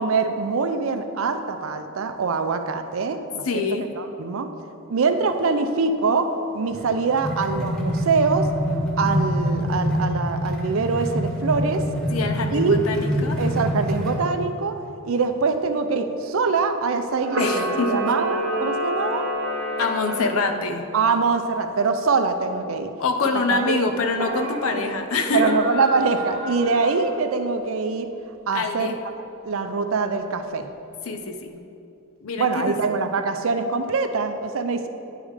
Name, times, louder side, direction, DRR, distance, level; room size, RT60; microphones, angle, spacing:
voice 1, 0.0-3.6 4.0-4.5 4.9-8.5 9.0-11.9 12.5-12.8 13.4-14.8 15.0-19.3 20.9-22.9 23.3-23.9 25.3-28.1 28.5-29.0 29.4-30.7 32.4-34.9, right 4 dB, 70° right, 8 dB, 0.5 m, -23 dB
voice 2, 3.5-3.9 12.1-13.4 17.4-18.1 19.8-20.9 23.0-25.5 28.5-29.0 31.0-31.6 32.2-32.8, left 3 dB, 80° left, 6 dB, 0.6 m, -25 dB
sound 1, 6.7-14.3, equal, 5° left, 0.9 m, -25 dB
Camera, 17.2-20.5 24.1-24.8 25.3-27.2, equal, 55° right, 0.9 m, -28 dB
9.9 x 3.6 x 4.8 m, 2.7 s
head